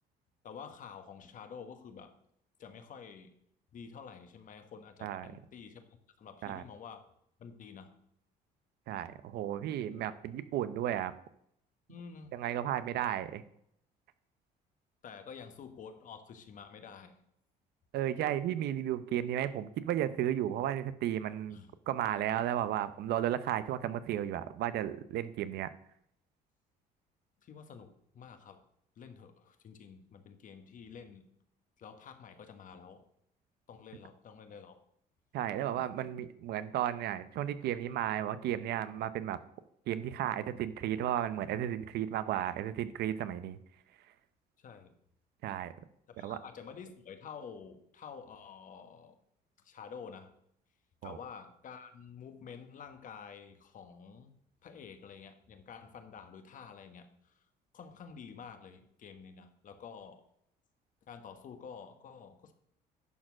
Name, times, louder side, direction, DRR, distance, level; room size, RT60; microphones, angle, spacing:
voice 1, 0.4-2.1 2.6-3.3 3.7-7.1 7.4-8.0 9.8-10.0 11.9-12.3 15.0-17.2 21.5-21.7 27.4-28.6 29.0-31.3 31.8-33.0 33.7-34.8 44.6-44.9 46.1-49.1 49.6-50.3 51.0-54.3 54.6-57.4 57.7-60.2 61.1-62.5, left 6 dB, 50° left, 8 dB, 1.3 m, -49 dB
voice 2, 5.0-5.3 6.4-6.6 8.9-11.1 12.3-13.4 17.9-21.6 21.9-25.7 35.3-39.4 39.9-43.6 45.4-45.7 46.2-46.4 51.0-51.2, right 11 dB, 75° right, 13 dB, 0.7 m, -34 dB
11.0 x 4.4 x 6.1 m, 0.72 s
cardioid pair, 110°, 17 cm